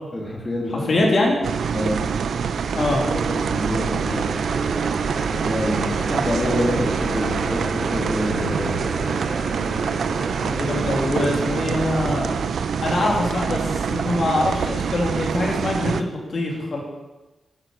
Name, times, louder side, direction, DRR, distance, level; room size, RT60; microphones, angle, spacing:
voice 1, 0.1-1.0 1.7-2.0 2.9-3.0 3.3-4.3 5.4-8.8, left 1 dB, 25° left, -1 dB, 2.1 m, -27 dB
voice 2, 0.9-1.4 2.7-3.1 6.1-6.3 10.4-12.4 12.8-16.8, left 2 dB, 50° left, -1 dB, 2.6 m, -23 dB
sound 1, 1.4-16.0, right 6 dB, 85° right, 0.5 m, -25 dB
sound 2, 1.5-12.9, right 3 dB, 60° right, 1.9 m, -31 dB
10.0 x 10.0 x 6.1 m, 1.1 s
wide cardioid pair, 155°, 0 cm